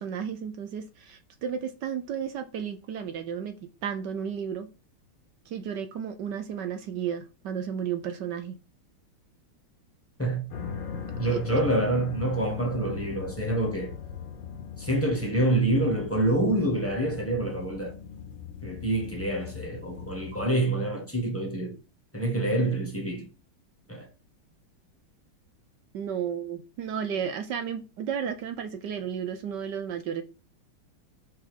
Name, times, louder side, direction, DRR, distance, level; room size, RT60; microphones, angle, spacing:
voice 1, 0.0-3.5 3.8-4.7 5.5-8.6 11.3-11.4 25.9-30.2, right 8 dB, 65° right, 1.2 m, -33 dB
sound 1, 10.5-20.5, left 6 dB, 65° left, 1.6 m, -40 dB
voice 2, 11.2-14.0 14.8-18.0 18.6-21.8 22.1-23.3 23.9-24.1, right 1 dB, 10° left, 1.3 m, -27 dB
6.2 x 3.5 x 5.0 m
omnidirectional pair, 2.3 m